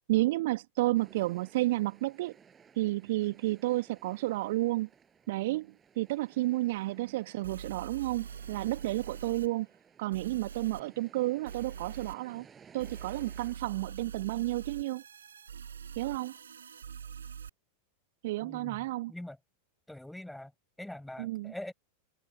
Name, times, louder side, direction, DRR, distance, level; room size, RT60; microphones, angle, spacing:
voice 1, 0.1-2.3 2.8-4.9 5.3-9.7 10.0-12.4 12.7-15.0 16.0-16.3 18.2-19.1 21.2-21.5, right 18 dB, 50° right, 1.4 m, -31 dB
sound 1, 0.9-13.5, right 7 dB, 20° right, 7.8 m, -59 dB
sound 2, 6.8-6.9 7.4-9.5 10.1-10.8 11.4-12.2 12.8-17.5, right 7 dB, 70° right, 7.8 m, -44 dB
voice 2, 18.4-19.4 19.9-20.5 20.8-21.7, left 1 dB, 5° left, 5.7 m, -43 dB
figure-of-eight pair, 90°, 0 cm